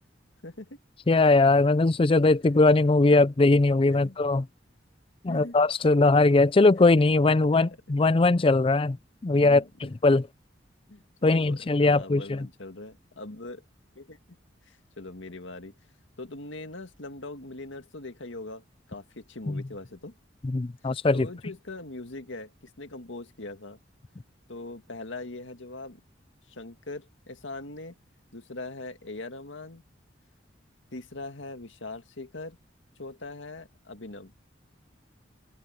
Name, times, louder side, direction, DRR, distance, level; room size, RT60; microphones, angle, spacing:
voice 1, 0.4-0.8 3.1-3.2 3.9-4.2 5.3-5.6 7.4-8.0 9.3-9.9 10.9-13.6 14.0-14.2 14.7-15.7 16.2-18.6 18.9-20.1 21.1-23.8 24.5-26.0 26.5-28.0 28.3-29.8 30.9-32.6 33.0-34.3, left 2 dB, 80° left, 2.0 m, -41 dB
voice 2, 1.1-4.4 5.2-9.0 9.2-10.3 11.2-12.5 19.5-19.6 20.4-21.3, left 3 dB, 30° left, 0.4 m, -21 dB
open air
head